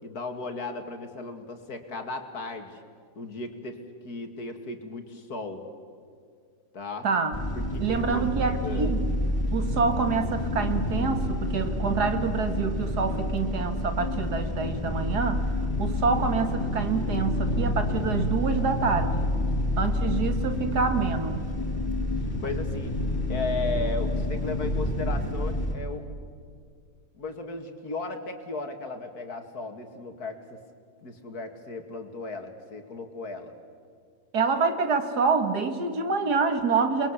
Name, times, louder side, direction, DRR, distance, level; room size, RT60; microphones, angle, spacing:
voice 1, 0.0-2.8 3.2-3.8 4.0-5.6 6.7-7.1 7.5-8.3 8.6-8.9 22.4-23.0 23.3-26.0 27.2-30.6 31.0-33.5, left 3 dB, 70° left, 5 dB, 2.7 m, -35 dB
voice 2, 7.0-7.4 7.8-9.1 9.5-15.5 15.8-19.3 19.8-21.5 34.3-37.1, right 5 dB, 80° right, 8 dB, 2.3 m, -27 dB
sound 1, 7.3-25.7, left 1 dB, 15° left, 5.9 m, -28 dB
29.0 x 21.5 x 8.3 m, 2.2 s
omnidirectional pair, 1.7 m